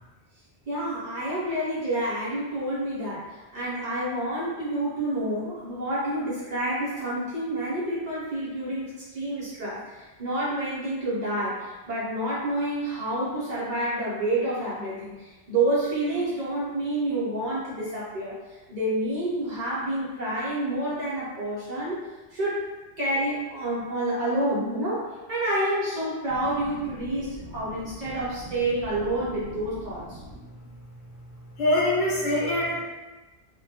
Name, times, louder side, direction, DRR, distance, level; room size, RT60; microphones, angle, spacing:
voice 1, 0.7-22.0 22.3-22.6 23.0-30.2, right 1 dB, 45° right, -9 dB, 0.6 m, -28 dB
voice 2, 31.6-32.8, left 1 dB, 70° left, -5 dB, 0.9 m, -24 dB
2.2 x 2.1 x 2.6 m, 1.2 s
omnidirectional pair, 1.1 m